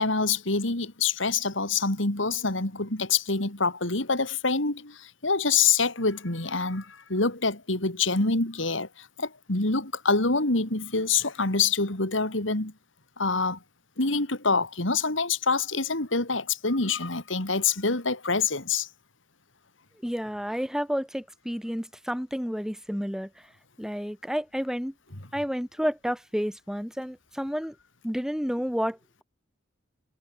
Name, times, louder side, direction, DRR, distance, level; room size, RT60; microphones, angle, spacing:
voice 1, 0.0-12.7 13.2-13.6 14.0-18.9, left 4 dB, 75° left, 3.4 m, -26 dB
voice 2, 20.0-23.3 23.8-24.9 25.3-27.7 28.0-29.0, equal, 5° right, 7.0 m, -30 dB
head